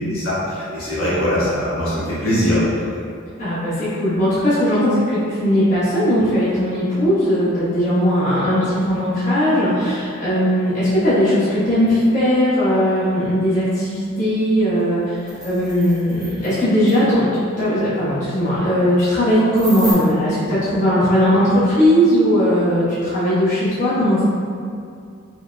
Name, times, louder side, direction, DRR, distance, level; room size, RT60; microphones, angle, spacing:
voice 1, 0.1-2.9, equal, 80° left, -11 dB, 1.3 m, -21 dB
voice 2, 3.4-15.2 15.4-17.3 17.6-24.2, equal, 35° left, -13 dB, 1.1 m, -18 dB
sound 1, 14.8-14.9 15.1-16.6 16.9-17.0 19.5-19.9, equal, 5° right, 0.6 m, -33 dB
5.0 x 2.5 x 2.2 m, 2.4 s
head